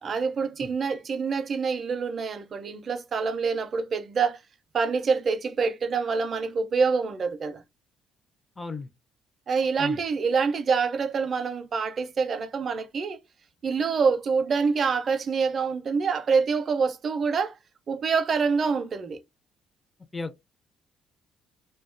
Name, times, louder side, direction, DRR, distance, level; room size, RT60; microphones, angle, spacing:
voice 1, 0.0-4.4 4.7-7.6 9.5-13.2 13.6-17.6 17.9-19.2, right 5 dB, 40° right, 0.4 m, -26 dB
voice 2, 8.6-8.9 9.8-10.0 20.1-20.4, left 4 dB, 20° left, 0.4 m, -35 dB
2.3 x 2.2 x 2.5 m
cardioid pair, 115°, 0 cm